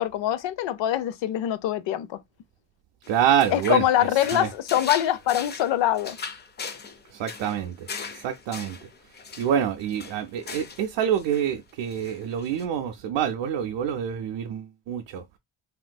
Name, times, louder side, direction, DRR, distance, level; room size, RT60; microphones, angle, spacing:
voice 1, 0.0-2.2 3.5-6.2, left 12 dB, 85° left, 0.5 m, -24 dB
sound 1, 3.0-10.9 11.2-11.6 11.9-12.6, left 5 dB, 25° left, 0.3 m, -39 dB
voice 2, 3.1-3.9 4.3-4.5 7.1-8.8 9.4-15.2, right 9 dB, 85° right, 0.5 m, -26 dB
3.6 x 2.5 x 2.2 m
cardioid pair, 135°, 43 cm